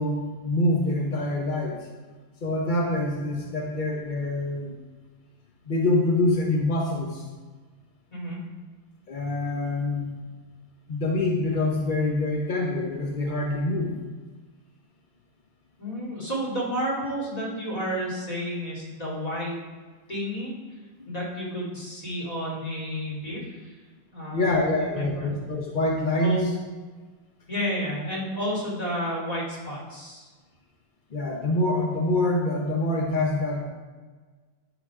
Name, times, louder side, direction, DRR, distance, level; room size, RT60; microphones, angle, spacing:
voice 1, 0.0-1.8 2.4-4.7 5.7-7.2 9.1-10.2 10.9-14.0 24.3-26.4 31.1-33.6, left 2 dB, 55° left, 0 dB, 0.5 m, -25 dB
voice 2, 15.8-19.6 20.1-20.5 21.1-23.8 24.1-25.3 26.2-26.5 27.5-30.3, equal, 20° left, -6 dB, 2.5 m, -31 dB
11.0 x 4.0 x 4.7 m, 1.4 s
omnidirectional pair, 2.0 m